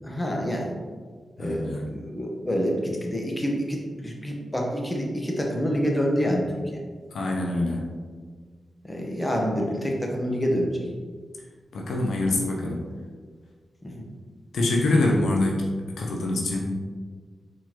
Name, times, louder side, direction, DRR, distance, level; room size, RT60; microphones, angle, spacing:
voice 1, 0.0-0.7 1.4-6.8 8.8-10.8 13.8-14.1, equal, 15° left, 0 dB, 1.0 m, -27 dB
voice 2, 1.4-1.9 7.1-7.8 11.7-12.8 14.5-15.6 16.0-16.7, left 2 dB, 80° left, -1 dB, 0.7 m, -25 dB
4.5 x 3.9 x 2.9 m, 1.5 s
cardioid pair, 50°, 0 cm